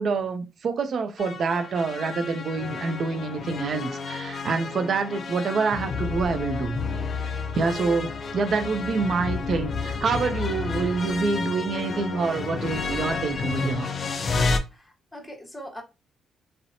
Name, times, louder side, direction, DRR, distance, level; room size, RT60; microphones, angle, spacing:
voice 1, 0.0-6.8 7.2-13.9, right 4 dB, 55° right, 0.4 m, -27 dB
sound 1, 1.2-14.6, left 4 dB, 45° left, 0.4 m, -30 dB
voice 2, 14.6-15.8, equal, 10° left, 0.8 m, -42 dB
2.7 x 2.0 x 2.6 m
cardioid pair, 90°, 0 cm